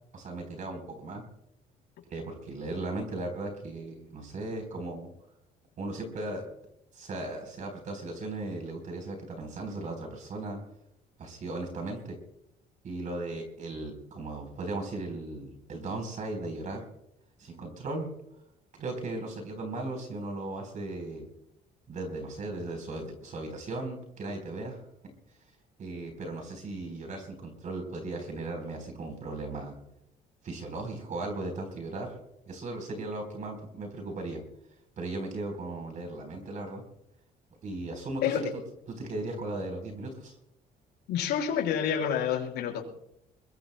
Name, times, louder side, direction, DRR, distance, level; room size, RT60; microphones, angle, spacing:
voice 1, 0.1-1.2 2.1-5.1 5.8-6.4 6.9-10.6 11.2-12.2 12.8-16.9 17.4-18.1 18.7-21.3 21.9-24.8 25.8-29.7 30.4-32.2 32.5-34.4 35.0-36.8 37.6-38.6 38.9-40.4, right 2 dB, 50° right, 4 dB, 4.0 m, -37 dB
voice 2, 38.2-38.5 41.1-42.8, left 8 dB, 80° left, 1 dB, 5.4 m, -28 dB
22.5 x 21.5 x 2.2 m, 0.81 s
cardioid pair, 110°, 17 cm